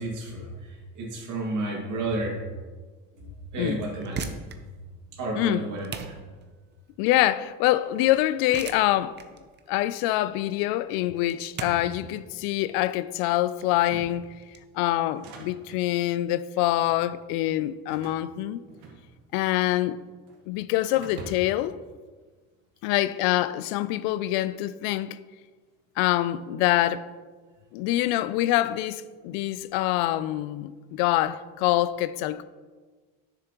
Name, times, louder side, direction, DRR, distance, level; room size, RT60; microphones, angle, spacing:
voice 1, 0.0-2.4 3.2-4.3 4.6-4.7 5.1-6.2, right 2 dB, 60° right, 2.2 m, -32 dB
voice 2, 3.2-3.8 5.4-5.6 7.0-9.2 9.7-14.3 14.7-18.6 19.3-20.0 20.5-21.7 22.8-25.2 26.0-27.1 27.7-32.4, left 15 dB, 80° left, 0.5 m, -25 dB
sound 1, 4.0-14.6, right 6 dB, 30° right, 0.6 m, -41 dB
sound 2, 11.5-12.7 13.7-14.4 15.0-15.9 16.7-17.0 17.9-19.4 19.7-20.4 20.9-21.7, right 3 dB, 85° right, 1.5 m, -45 dB
10.0 x 7.1 x 3.0 m
cardioid pair, 130°, 35 cm